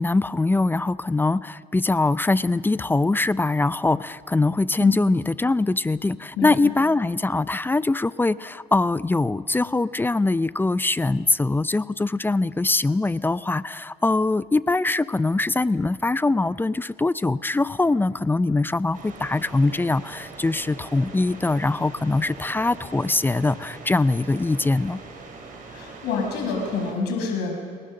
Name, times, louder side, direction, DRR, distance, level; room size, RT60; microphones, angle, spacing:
voice 1, 0.0-25.0, left 2 dB, 10° left, 16 dB, 0.5 m, -22 dB
voice 2, 6.4-6.7 25.7-27.5, left 5 dB, 85° left, 2 dB, 5.7 m, -27 dB
sound 1, 18.9-26.9, right 3 dB, 50° right, 5.7 m, -42 dB
30.0 x 19.0 x 6.6 m, 2.3 s
cardioid pair, 110°, 17 cm